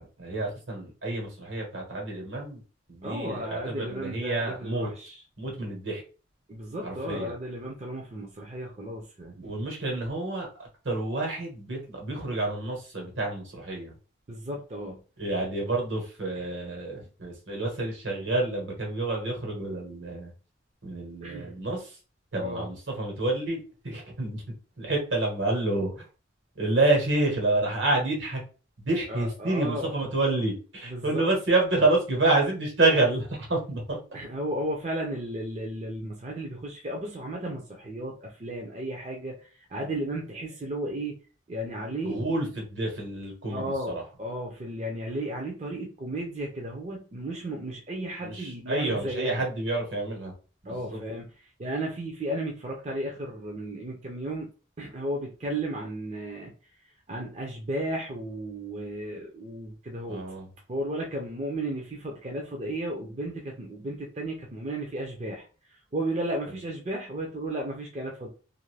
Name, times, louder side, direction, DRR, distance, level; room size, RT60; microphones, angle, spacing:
voice 1, 0.0-2.6 2.9-4.9 5.4-6.0 6.8-7.3 9.4-13.9 15.2-20.3 20.8-22.0 22.3-24.4 24.8-26.0 26.6-28.4 28.8-34.0 42.0-44.0 48.2-50.3 50.6-51.0 60.1-60.5, right 2 dB, 75° right, 0 dB, 1.3 m, -28 dB
voice 2, 3.0-5.2 6.5-9.7 14.3-15.0 16.4-16.5 21.2-21.5 22.3-22.7 29.1-29.9 30.8-31.2 34.1-39.4 39.7-41.2 41.5-42.4 43.5-49.4 50.7-51.3 51.6-54.5 54.8-56.5 57.1-60.2 60.7-65.5 65.9-68.3, right 1 dB, 35° right, 0 dB, 0.5 m, -34 dB
2.6 x 2.5 x 3.2 m, 0.35 s
head